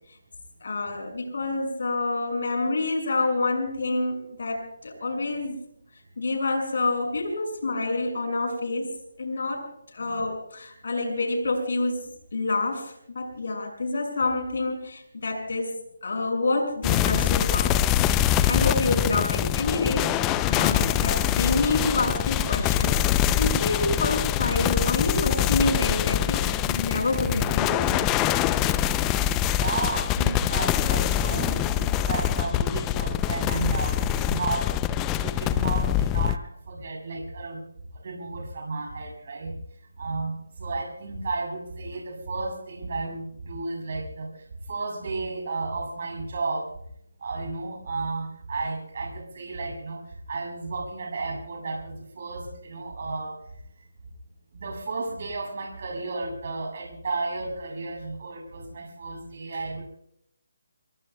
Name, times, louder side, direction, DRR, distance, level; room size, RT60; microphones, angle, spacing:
voice 1, 0.6-5.6 6.2-15.7 16.0-17.7 18.1-20.2 20.5-28.0, left 2 dB, 65° left, 4 dB, 6.2 m, -28 dB
sound 1, 16.8-36.4, left 11 dB, 15° left, 0.5 m, -24 dB
voice 2, 29.4-37.6 37.9-39.6 40.0-44.3 44.7-46.7 47.2-53.4 54.5-59.8, right 3 dB, 50° right, 2 dB, 6.8 m, -33 dB
27.5 x 22.5 x 2.3 m, 0.72 s
figure-of-eight pair, 160°, 0 cm